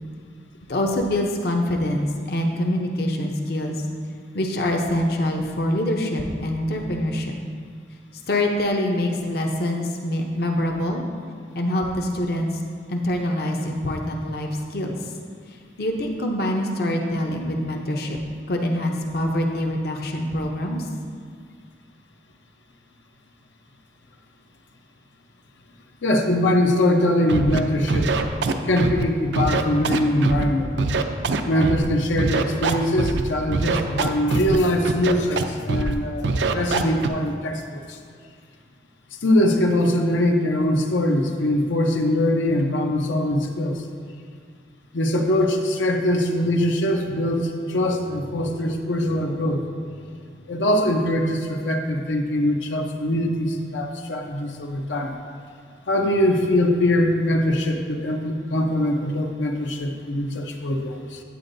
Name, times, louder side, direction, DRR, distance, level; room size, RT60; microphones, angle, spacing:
voice 1, 0.7-3.7 4.3-7.3 8.3-11.0 11.5-12.5 12.9-15.1 15.8-18.2 18.5-20.8, left 1 dB, 55° left, 1 dB, 0.6 m, -25 dB
voice 2, 26.0-28.2 28.6-30.8 31.5-38.0 39.2-43.8 44.9-49.7 50.5-55.2 55.9-61.2, left 1 dB, 90° left, 2 dB, 0.7 m, -22 dB
Scratching (performance technique), 27.3-27.6 27.9-29.0 29.3-30.4 30.8-31.9 32.2-33.2 33.5-34.6 34.8-35.4 35.7-35.9 36.2-37.1, right 4 dB, 75° right, 0.5 m, -23 dB
9.2 x 8.8 x 2.6 m, 2.1 s
head